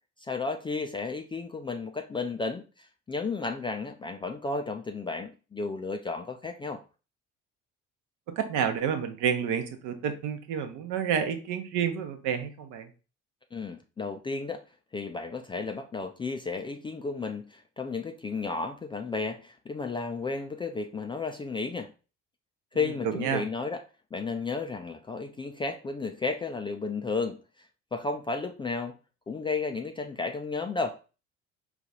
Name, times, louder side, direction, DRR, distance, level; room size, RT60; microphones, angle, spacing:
voice 1, 0.2-6.8 13.5-14.6 14.9-21.9 22.7-23.8 24.1-27.4 27.9-29.0 29.3-31.0, left 4 dB, 15° left, 5 dB, 0.4 m, -33 dB
voice 2, 8.3-12.9 23.0-23.4, right 8 dB, 55° right, 7 dB, 0.8 m, -29 dB
4.9 x 2.4 x 3.9 m, 0.34 s
figure-of-eight pair, 55°, 37 cm